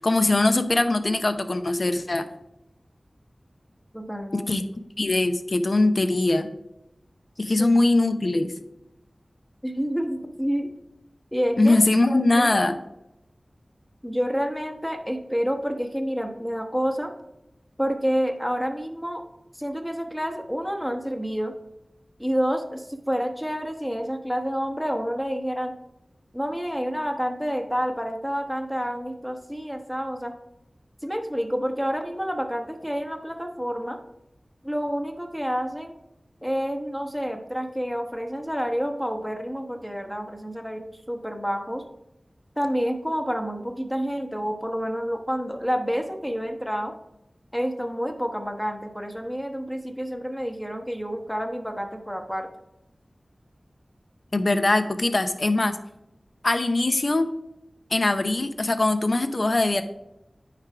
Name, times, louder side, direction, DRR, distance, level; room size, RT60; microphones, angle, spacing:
voice 1, 0.0-2.2 4.3-4.6 5.0-6.5 7.4-8.5 11.6-12.8 54.3-55.8 56.4-57.3 57.9-59.8, left 2 dB, 55° left, 9 dB, 0.6 m, -21 dB
voice 2, 3.9-4.5 7.4-7.7 9.6-10.7 11.3-11.8 12.1-12.5 14.0-17.1 17.8-19.2 19.6-21.5 22.2-25.7 26.3-30.3 31.0-34.0 34.6-35.9 36.4-41.8 42.6-46.9 47.5-52.5, equal, 5° left, 4 dB, 1.0 m, -28 dB
9.4 x 3.3 x 4.8 m, 0.86 s
wide cardioid pair, 50°, 0 cm